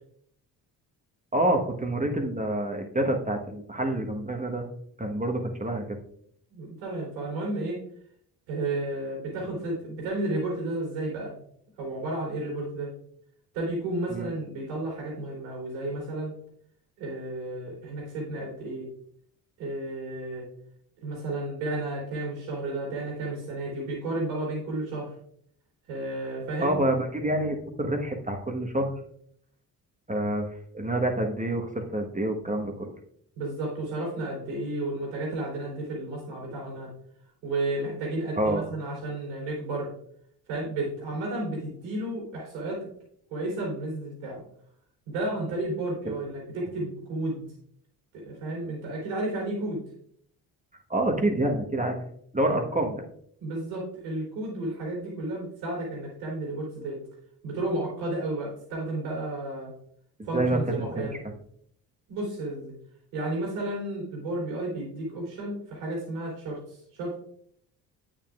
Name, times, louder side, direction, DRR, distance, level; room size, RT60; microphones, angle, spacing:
voice 1, 1.3-4.7 5.0-6.0 14.1-14.3 26.6-28.9 30.1-32.9 38.4-38.7 46.0-46.2 50.9-52.0 52.3-53.0 60.3-61.3, right 1 dB, 15° right, 3 dB, 1.3 m, -27 dB
voice 2, 6.5-7.8 8.5-11.3 11.8-12.9 13.5-16.3 17.0-18.9 19.6-20.4 21.0-25.1 25.9-26.8 33.3-36.9 37.4-39.9 40.5-42.9 43.3-44.4 45.1-47.4 48.1-49.8 53.4-57.0 57.4-59.7 60.2-61.2 62.1-62.7 63.1-67.2, right 2 dB, 80° right, -2 dB, 3.4 m, -32 dB
8.7 x 7.3 x 2.4 m, 0.66 s
hypercardioid pair, 50°, 49 cm